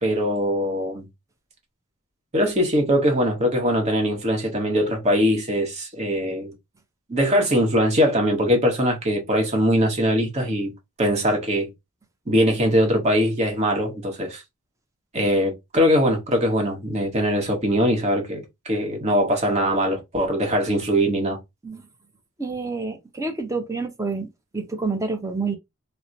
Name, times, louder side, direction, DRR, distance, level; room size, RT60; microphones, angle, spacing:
voice 1, 0.0-1.1 2.3-6.5 7.1-10.7 11.0-11.7 12.3-14.4 15.1-21.4, equal, 30° right, 1.1 m, -21 dB
voice 2, 22.4-25.5, right 3 dB, 15° right, 0.6 m, -28 dB
3.0 x 2.1 x 3.8 m
head